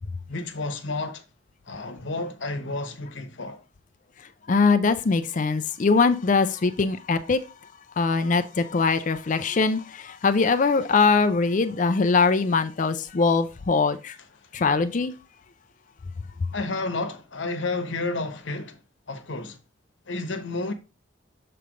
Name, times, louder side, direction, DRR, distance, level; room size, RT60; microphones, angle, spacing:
voice 1, 0.3-1.2 1.7-3.6 16.5-18.8 19.1-19.6 20.1-20.7, left 2 dB, 75° left, 1.0 m, -31 dB
voice 2, 4.5-7.4 8.0-14.2 14.5-15.1, left 4 dB, 40° left, 0.4 m, -22 dB
6.8 x 3.3 x 5.0 m
head